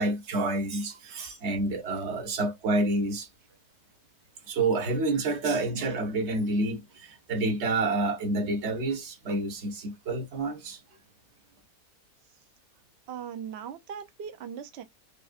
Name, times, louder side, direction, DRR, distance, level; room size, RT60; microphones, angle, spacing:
voice 1, 0.0-3.3 4.5-10.8, right 2 dB, 50° right, 1.0 m, -28 dB
voice 2, 13.1-14.8, right 8 dB, 75° right, 0.6 m, -39 dB
5.0 x 2.5 x 2.4 m
omnidirectional pair, 1.7 m